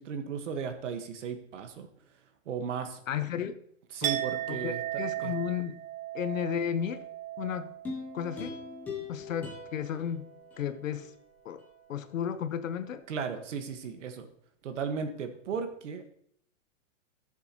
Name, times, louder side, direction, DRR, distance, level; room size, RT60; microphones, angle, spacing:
voice 1, 0.0-1.9 2.4-3.0 3.9-4.8 5.2-5.3 13.1-14.3 14.6-16.1, right 6 dB, 70° right, 7 dB, 1.5 m, -35 dB
voice 2, 3.1-3.5 4.0-4.2 4.5-5.8 6.1-7.0 7.4-7.7 8.1-8.6 9.1-10.2 10.6-11.1 11.4-11.6 11.9-13.0, left 9 dB, 85° left, 11 dB, 1.1 m, -33 dB
Chink clink, 4.0-10.0 10.3-10.7, right 13 dB, 50° right, 0.9 m, -37 dB
sound 1, 7.8-11.1 11.6-11.7, left 4 dB, 5° left, 0.6 m, -42 dB
15.0 x 7.0 x 3.0 m, 0.70 s
hypercardioid pair, 170°, 38 cm